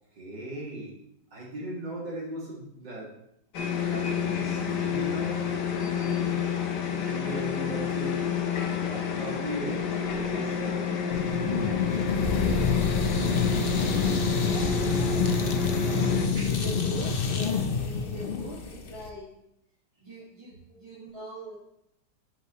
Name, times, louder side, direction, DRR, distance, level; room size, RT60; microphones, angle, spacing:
voice 1, 0.1-0.9 1.3-3.1 3.8-8.2 8.6-11.1 11.6-12.8 16.3-16.7 20.7-20.8, right 1 dB, 85° right, -5 dB, 3.4 m, -39 dB
sound 1, 3.5-16.3, left 6 dB, 75° left, 1.7 m, -29 dB
sound 2, 11.1-19.1, left 6 dB, 40° left, 0.8 m, -27 dB
voice 2, 13.9-19.3 20.0-21.5, right 1 dB, 15° right, -7 dB, 1.8 m, -42 dB
10.5 x 9.0 x 3.1 m, 0.76 s
omnidirectional pair, 1.9 m